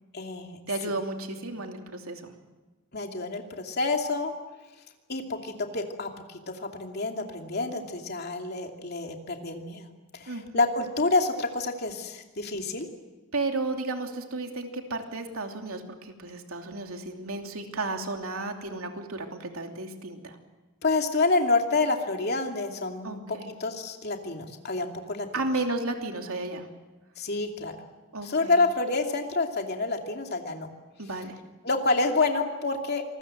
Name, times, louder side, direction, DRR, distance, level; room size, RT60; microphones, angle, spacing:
voice 1, 0.1-0.6 1.4-1.5 2.9-4.3 5.1-9.9 10.1-12.9 20.8-25.3 27.2-27.7 28.2-30.7 31.6-33.2, left 3 dB, 50° left, 3 dB, 2.7 m, -28 dB
voice 2, 0.7-2.3 10.3-10.4 13.3-20.3 23.0-23.5 25.3-26.7 28.1-28.5 31.0-31.4, right 2 dB, 85° right, 3 dB, 2.9 m, -33 dB
27.5 x 20.5 x 7.8 m, 1.2 s
head